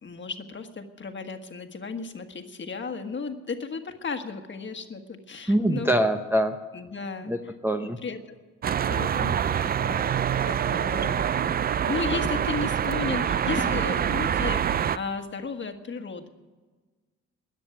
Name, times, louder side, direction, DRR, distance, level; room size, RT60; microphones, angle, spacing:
voice 1, 0.0-5.9 6.7-7.3 7.8-8.4 8.9-10.1 10.4-11.5 11.9-16.3, left 4 dB, 40° left, 6 dB, 1.5 m, -34 dB
voice 2, 5.5-6.6 7.3-8.0, right 1 dB, 5° right, 3 dB, 0.8 m, -24 dB
sound 1, 8.6-15.0, right 9 dB, 30° right, 0.4 m, -25 dB
13.5 x 9.8 x 9.3 m, 1.4 s
cardioid pair, 90°, 30 cm